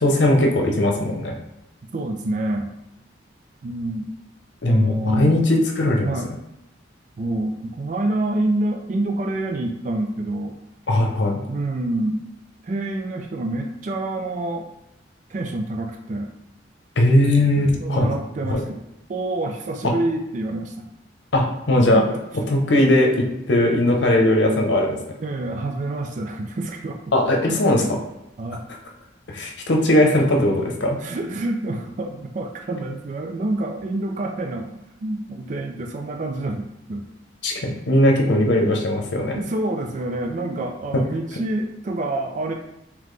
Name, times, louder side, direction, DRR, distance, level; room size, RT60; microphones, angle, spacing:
voice 1, 0.0-1.3 4.6-6.1 10.9-11.4 17.0-18.1 18.5-18.6 19.8-19.9 21.3-22.0 22.5-25.0 27.1-27.8 29.3-31.0 37.4-39.4 40.9-41.0, left 1 dB, 75° left, 1 dB, 0.8 m, -19 dB
voice 2, 1.9-2.7 3.6-4.1 4.7-5.4 6.0-6.3 7.2-10.6 11.5-12.2 12.6-14.7 15.3-16.3 17.6-18.8 19.1-20.9 21.9-22.2 25.2-27.0 27.5-27.6 28.4-28.7 31.0-37.0 39.3-42.5, right 2 dB, 45° right, 3 dB, 0.4 m, -27 dB
4.0 x 3.0 x 3.2 m, 0.88 s
head